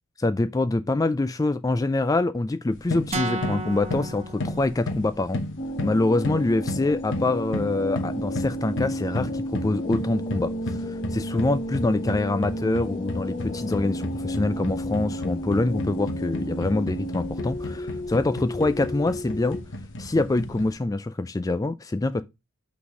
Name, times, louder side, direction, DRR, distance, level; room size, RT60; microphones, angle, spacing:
voice 1, 0.2-5.4 5.8-19.6 20.0-22.2, left 2 dB, 15° left, 0.3 m, -25 dB
sound 1, 2.7-20.7, left 1 dB, 55° left, 1.1 m, -34 dB
sound 2, 3.1-5.2, right 2 dB, 30° right, 0.9 m, -33 dB
sound 3, 5.6-19.6, equal, 30° left, 1.0 m, -32 dB
6.0 x 4.0 x 6.1 m
head